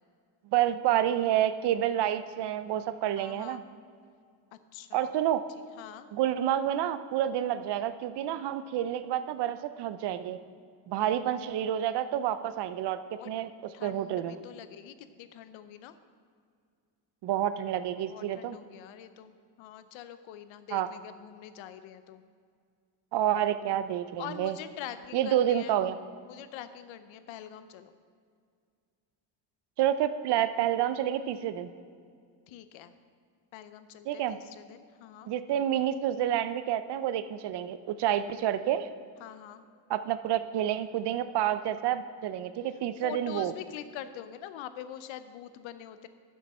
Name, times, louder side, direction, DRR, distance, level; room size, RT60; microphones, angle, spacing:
voice 1, 0.5-3.6 4.9-5.4 6.1-10.4 10.9-13.0 13.3-13.5 13.8-14.4 17.2-18.6 20.7-20.9 23.1-24.5 25.1-26.0 29.8-31.7 34.1-34.4 35.3-38.9 39.9-43.5, right 11 dB, 65° right, 12 dB, 0.6 m, -29 dB
voice 2, 3.2-3.6 4.5-5.1 5.8-6.1 11.0-11.2 13.2-13.3 13.7-15.9 18.1-22.2 24.2-27.9 32.5-32.9 33.5-35.3 39.2-39.7 43.0-46.1, left 10 dB, 90° left, 12 dB, 0.7 m, -45 dB
11.5 x 7.4 x 4.3 m, 2.2 s
cardioid pair, 125°, 45 cm